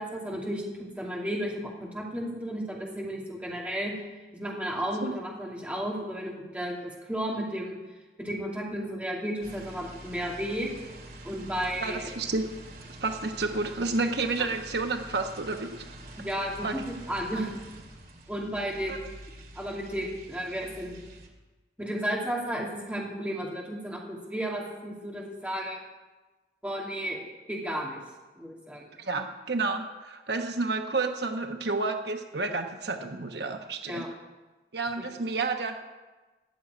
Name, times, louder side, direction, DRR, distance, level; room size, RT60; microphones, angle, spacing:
voice 1, 0.0-3.9 4.3-7.8 8.2-10.7 11.2-12.1 16.2-17.6 18.3-19.0 19.5-21.0 21.8-25.8 26.6-27.2 27.5-28.0 28.3-28.9 33.9-34.1, equal, 10° right, -3 dB, 2.6 m, -33 dB
sound 1, 9.4-21.3, right 1 dB, 55° right, 2.2 m, -46 dB
voice 2, 11.8-12.4 13.0-15.7 16.6-16.7 17.3-17.4 18.9-19.0 29.0-34.1 34.7-35.8, right 3 dB, 75° right, 5 dB, 1.0 m, -30 dB
14.0 x 7.5 x 9.5 m, 1.2 s
head